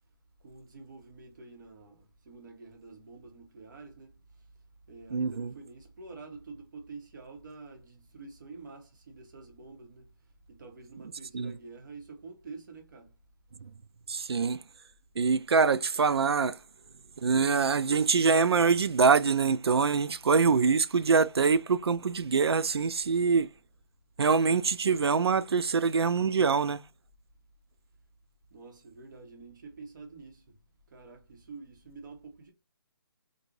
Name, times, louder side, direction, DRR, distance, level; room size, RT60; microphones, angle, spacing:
voice 1, 0.4-4.1 4.9-10.1 10.5-13.1 28.5-30.4 30.9-32.5, right 3 dB, 50° right, 1.3 m, -48 dB
voice 2, 5.1-5.5 11.3-11.5 14.1-14.6 15.2-16.6 17.2-23.5 24.2-26.8, right 5 dB, 85° right, 0.4 m, -24 dB
4.0 x 2.6 x 3.0 m
figure-of-eight pair, 155°, 13 cm